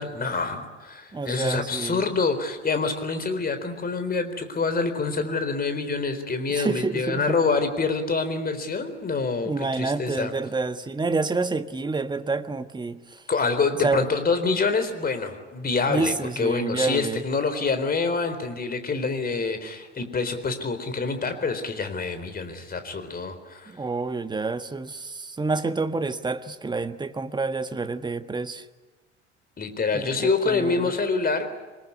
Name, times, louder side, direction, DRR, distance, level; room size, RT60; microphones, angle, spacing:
voice 1, 0.0-10.3 13.3-23.7 29.6-31.5, left 4 dB, 25° left, 8 dB, 4.1 m, -26 dB
voice 2, 1.1-2.0 6.5-7.4 9.4-13.2 13.8-14.1 15.9-17.2 23.7-28.6 29.9-30.9, right 3 dB, 10° right, 10 dB, 1.5 m, -28 dB
26.5 x 21.0 x 9.9 m, 1.2 s
figure-of-eight pair, 65°, 35 cm